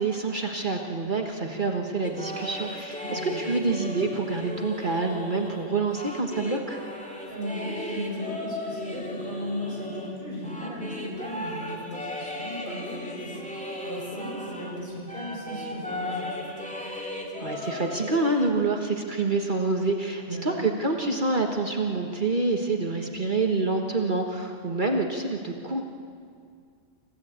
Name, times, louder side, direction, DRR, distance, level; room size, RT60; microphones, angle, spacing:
voice 1, 0.0-6.8 17.4-25.8, right 3 dB, 45° right, 2 dB, 1.5 m, -27 dB
sound 1, 2.0-14.8 15.1-18.5, left 1 dB, 5° left, 2.5 m, -36 dB
voice 2, 3.0-3.4 7.3-16.6 20.2-20.7, equal, 45° left, -5 dB, 8.1 m, -36 dB
27.0 x 15.5 x 8.7 m, 2.2 s
omnidirectional pair, 1.2 m